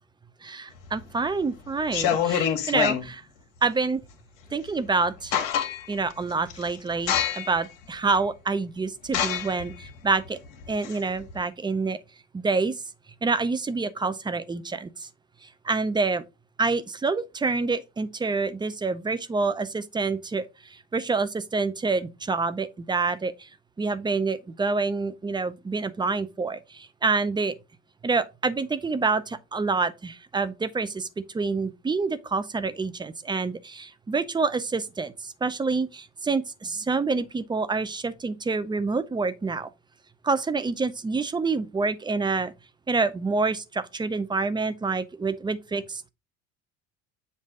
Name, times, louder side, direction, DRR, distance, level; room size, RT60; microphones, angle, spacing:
voice 1, 0.4-3.2 3.6-4.0 4.5-5.4 5.9-10.4 10.7-12.0 12.3-12.7 13.2-15.1 15.6-16.2 16.6-20.5 20.9-23.5 23.8-27.5 28.0-31.1 31.3-39.7 40.2-42.5 42.9-46.1, right 4 dB, 15° right, 0.5 m, -27 dB
sound 1, 0.9-1.3 1.8-3.1 4.7-4.8 5.1-6.0 6.5-6.7 7.1-7.6 8.2-8.3 9.1-11.4, left 9 dB, 75° left, 1.4 m, -26 dB
7.4 x 2.6 x 4.9 m
supercardioid pair, 110°, 33 cm